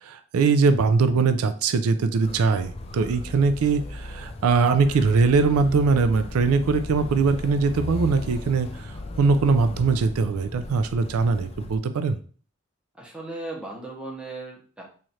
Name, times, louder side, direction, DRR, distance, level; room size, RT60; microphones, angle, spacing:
voice 1, 0.0-12.2, right 4 dB, 85° right, 10 dB, 0.4 m, -21 dB
Motor vehicle (road), 2.2-11.8, left 2 dB, 30° left, 0.3 m, -37 dB
voice 2, 12.9-14.8, right 2 dB, 5° right, -2 dB, 0.7 m, -36 dB
3.1 x 2.4 x 4.1 m, 0.42 s
head